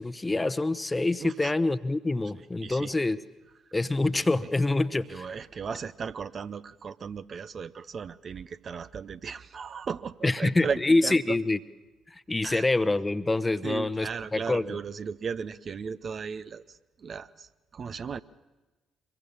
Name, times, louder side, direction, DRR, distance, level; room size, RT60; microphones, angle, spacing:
voice 1, 0.0-3.2 3.7-5.3 10.2-11.6 12.1-14.7, left 2 dB, 20° left, 12 dB, 1.0 m, -26 dB
voice 2, 1.2-1.5 2.6-2.9 5.1-11.4 12.4-12.6 13.6-16.6 17.0-17.5 17.7-18.2, right 6 dB, 45° right, 13 dB, 0.7 m, -36 dB
24.5 x 22.0 x 7.2 m, 1.1 s
figure-of-eight pair, 45°, 0 cm